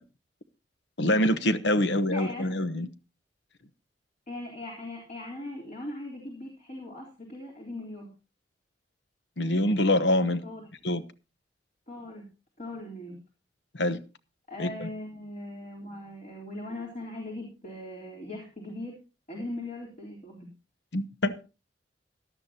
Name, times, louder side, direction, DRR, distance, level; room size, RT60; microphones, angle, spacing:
voice 1, 1.0-2.9 9.4-10.4 10.8-11.0 13.7-14.0 14.6-14.9 20.9-21.3, left 1 dB, 70° left, 1.0 m, -25 dB
voice 2, 2.1-2.5 4.3-8.1 10.4-10.6 11.9-12.2 12.6-13.2 14.5-19.0 19.3-20.5, left 1 dB, 45° left, 3.6 m, -39 dB
17.5 x 12.0 x 2.8 m
head